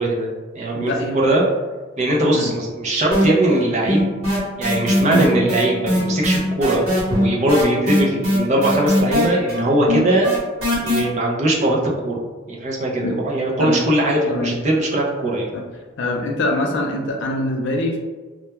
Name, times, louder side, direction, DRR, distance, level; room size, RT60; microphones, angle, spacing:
voice 1, 0.0-1.4 2.0-4.1 4.6-10.3 10.8-11.8 12.0-12.2 12.5-15.5, right 1 dB, 35° right, -2 dB, 0.4 m, -20 dB
voice 2, 0.7-1.2 2.3-2.5 5.0-5.2 13.0-13.1 13.6-13.8 14.3-14.5 15.5-15.6 16.0-18.0, left 1 dB, 60° left, 1 dB, 0.4 m, -23 dB
sound 1, 3.1-3.6 3.9-11.0, left 1 dB, 85° right, 1.0 m, -20 dB
2.2 x 2.2 x 2.9 m, 1.3 s
head